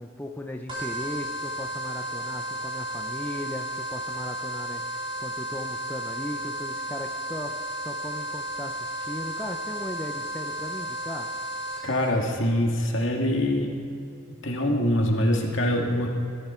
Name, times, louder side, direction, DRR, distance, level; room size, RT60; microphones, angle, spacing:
voice 1, 0.0-11.3, left 1 dB, 10° left, 3 dB, 0.6 m, -37 dB
sound 1, 0.7-12.1, right 1 dB, 25° right, 2.9 m, -33 dB
voice 2, 11.8-13.8 14.4-16.1, left 1 dB, 60° left, 0 dB, 2.1 m, -24 dB
20.0 x 12.5 x 4.4 m, 2.5 s
head